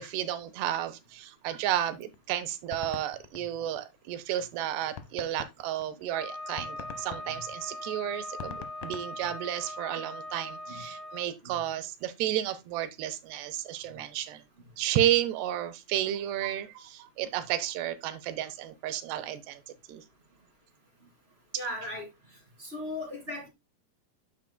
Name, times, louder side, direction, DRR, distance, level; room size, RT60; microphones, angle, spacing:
voice 1, 0.0-14.4 14.8-19.6 19.9-20.0, right 12 dB, 90° right, 3.0 m, -32 dB
Fireworks (generated), 2.1-4.2 4.6-4.7 5.0-9.9, left 8 dB, 75° left, 1.8 m, -45 dB
Wind instrument woodwind instrument, 6.1-11.3, left 1 dB, ahead, 0.9 m, -40 dB
voice 2, 21.5-22.1 22.6-23.5, left 1 dB, 25° right, 1.3 m, -37 dB
9.6 x 7.7 x 2.2 m
omnidirectional pair, 4.7 m